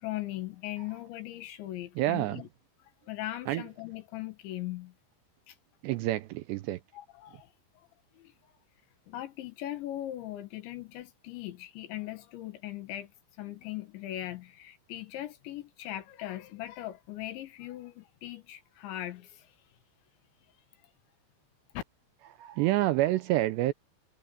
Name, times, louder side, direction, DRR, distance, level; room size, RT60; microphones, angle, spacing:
voice 1, 0.0-2.5 3.1-4.9 5.5-5.6 6.9-7.9 8.2-8.5 9.1-13.1 13.4-19.5 21.7-21.8, left 14 dB, 75° left, 3.7 m, -39 dB
voice 2, 2.0-2.4 3.5-3.6 5.8-6.8 22.4-23.7, right 16 dB, 80° right, 2.6 m, -28 dB
omnidirectional pair, 5.5 m